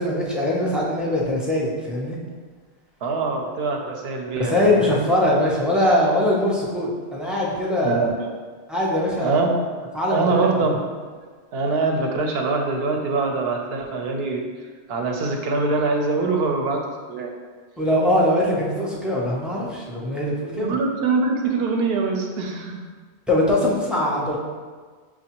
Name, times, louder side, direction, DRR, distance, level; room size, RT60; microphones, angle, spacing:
voice 1, 0.0-2.2 4.4-8.1 8.7-9.4 9.9-10.5 17.8-20.7 23.3-24.4, left 1 dB, ahead, -5 dB, 0.4 m, -22 dB
voice 2, 3.0-4.9 7.8-8.2 9.2-9.6 10.1-10.9 11.5-14.4 14.9-16.8 17.1-17.3 20.5-22.8, right 3 dB, 65° right, 2 dB, 0.8 m, -23 dB
6.1 x 2.3 x 2.9 m, 1.5 s
omnidirectional pair, 1.1 m